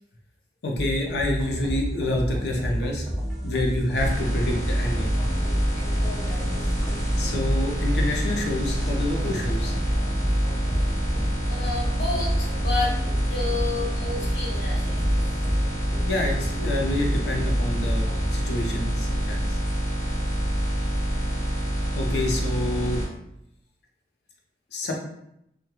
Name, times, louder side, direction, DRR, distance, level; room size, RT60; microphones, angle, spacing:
voice 1, 0.6-3.1 3.4-5.3 7.2-9.8 16.0-19.6 21.9-23.0 24.7-25.0, left 1 dB, 70° left, 0 dB, 0.5 m, -28 dB
sound 1, 0.7-18.3, equal, 5° right, 0.6 m, -31 dB
sound 2, 3.9-23.1, equal, 40° left, 1.1 m, -26 dB
voice 2, 6.0-6.6 11.5-13.0 13.3-15.2, left 3 dB, 85° left, -5 dB, 1.0 m, -31 dB
2.2 x 2.1 x 2.9 m, 0.79 s
head